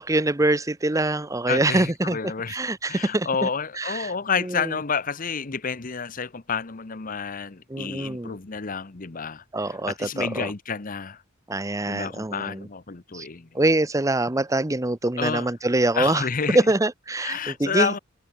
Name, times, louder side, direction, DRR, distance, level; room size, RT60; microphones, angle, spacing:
voice 1, 0.0-2.2 2.5-3.5 3.8-4.1 4.4-4.8 7.7-8.4 9.5-10.5 11.5-12.7 13.1-13.3 13.5-16.2 16.5-17.9, right 2 dB, 15° right, 0.8 m, -24 dB
voice 2, 1.5-2.6 2.9-11.2 11.9-13.5 15.2-15.5 16.0-16.7 17.2-18.0, left 6 dB, 45° left, 1.0 m, -29 dB
head